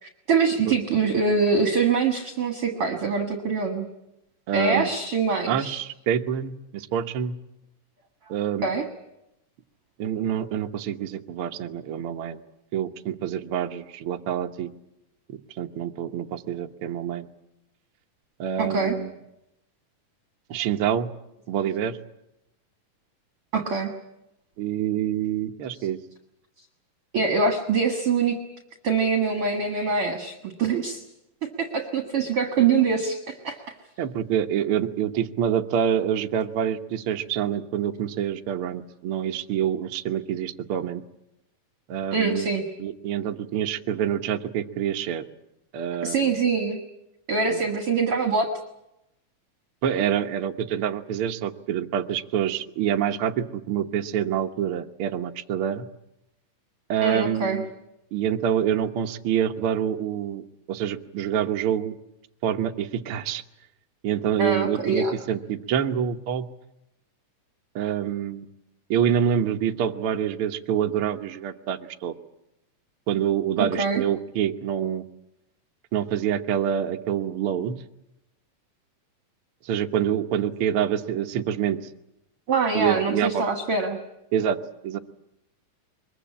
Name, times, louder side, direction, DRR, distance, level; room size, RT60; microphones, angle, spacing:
voice 1, 0.0-3.9 4.5-5.8 8.6-8.9 18.6-19.0 23.5-23.9 27.1-28.4 28.8-31.0 31.6-33.6 42.1-42.6 46.0-46.8 47.3-48.5 57.0-57.6 64.4-65.1 73.6-74.0 82.5-84.0, right 4 dB, 50° right, 5 dB, 2.2 m, -24 dB
voice 2, 4.5-4.9 5.5-7.4 8.3-8.7 10.0-12.4 12.7-14.7 15.3-17.3 18.4-19.1 20.5-21.1 21.5-22.0 24.6-26.0 34.0-41.0 41.9-42.5 42.8-45.2 45.7-46.2 47.5-47.6 49.8-55.9 56.9-57.7 58.1-62.0 62.4-63.4 64.0-66.5 67.7-68.5 68.9-72.1 73.1-75.0 75.9-77.8 79.6-81.8 82.7-83.4 84.3-84.6 84.8-85.0, right 9 dB, 75° right, 5 dB, 1.2 m, -26 dB
23.0 x 22.0 x 8.6 m, 0.87 s
omnidirectional pair, 3.9 m